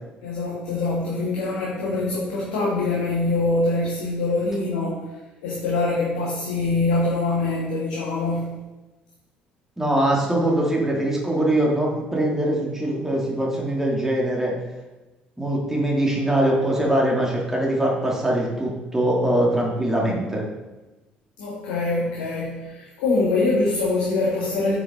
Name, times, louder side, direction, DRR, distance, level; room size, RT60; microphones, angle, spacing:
voice 1, 0.2-8.6 21.4-24.7, left 3 dB, 65° left, -5 dB, 1.9 m, -24 dB
voice 2, 9.8-14.5 15.4-20.4, right 1 dB, 10° right, -3 dB, 2.9 m, -22 dB
8.7 x 7.1 x 3.9 m, 1.1 s
figure-of-eight pair, 50°, 5 cm